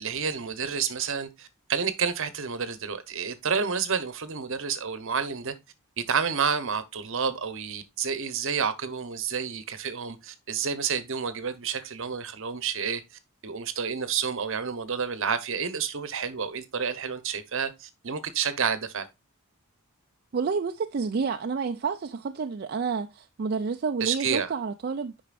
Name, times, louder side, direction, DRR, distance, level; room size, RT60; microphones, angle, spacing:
voice 1, 0.0-5.5 6.0-13.0 13.4-19.1 24.0-24.5, right 6 dB, 60° right, 0.9 m, -29 dB
voice 2, 20.3-25.2, right 5 dB, 45° right, 0.4 m, -29 dB
8.6 x 5.4 x 2.5 m
head